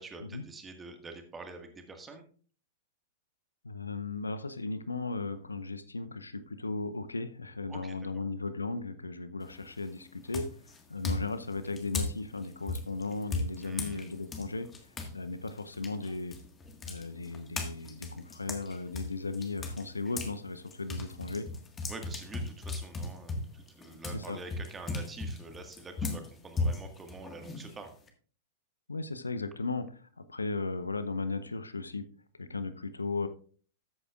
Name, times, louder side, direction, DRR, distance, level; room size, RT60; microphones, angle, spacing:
voice 1, 0.0-2.2 7.7-8.2 13.6-14.1 21.9-27.9, right 3 dB, 15° right, 5 dB, 1.7 m, -46 dB
voice 2, 3.6-10.5 10.9-14.7 15.1-16.4 16.9-21.5 24.1-24.4 28.9-29.8 30.2-32.0 32.4-33.3, left 3 dB, 80° left, 12 dB, 0.7 m, -36 dB
sound 1, 9.4-9.8 10.3-15.1 15.5-20.4 20.7-28.1, left 2 dB, 20° left, 1.6 m, -37 dB
13.5 x 8.5 x 2.4 m, 0.43 s
figure-of-eight pair, 100°, 0 cm